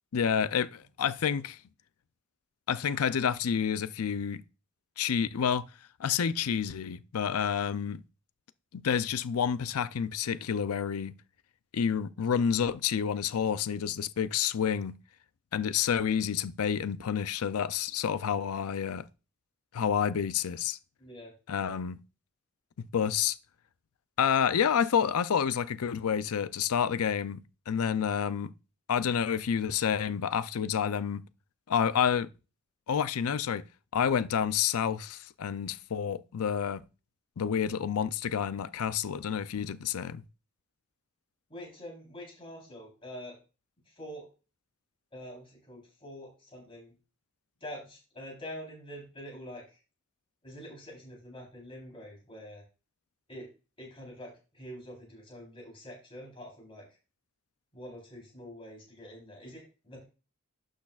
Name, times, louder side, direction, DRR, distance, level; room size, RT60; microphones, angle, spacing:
voice 1, 0.1-1.6 2.7-4.4 5.0-5.7 6.0-8.0 8.7-11.2 11.7-15.0 15.5-19.1 19.7-20.8 21.5-22.0 22.9-23.4 24.2-27.4 27.7-28.5 28.9-31.2 31.7-32.3 32.9-33.7 33.9-36.8 37.4-40.2, left 7 dB, 90° left, 0.5 m, -29 dB
voice 2, 21.0-21.3 41.5-43.4 43.9-44.3 45.1-46.9 47.6-49.8 50.4-52.6 53.3-53.5 53.8-57.0 57.7-60.0, equal, 25° left, 3.7 m, -45 dB
11.5 x 6.4 x 2.4 m
head